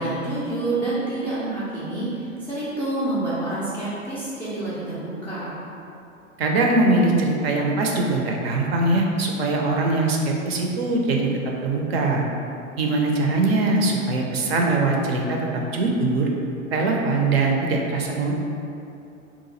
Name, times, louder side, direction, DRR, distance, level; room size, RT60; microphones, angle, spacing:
voice 1, 0.0-5.6, right 2 dB, 5° left, -13 dB, 0.4 m, -28 dB
voice 2, 6.4-11.3 11.6-12.2 12.8-16.3 16.7-18.3, right 2 dB, 50° right, 0 dB, 0.5 m, -22 dB
2.9 x 2.4 x 3.8 m, 2.6 s
figure-of-eight pair, 95°, 40 cm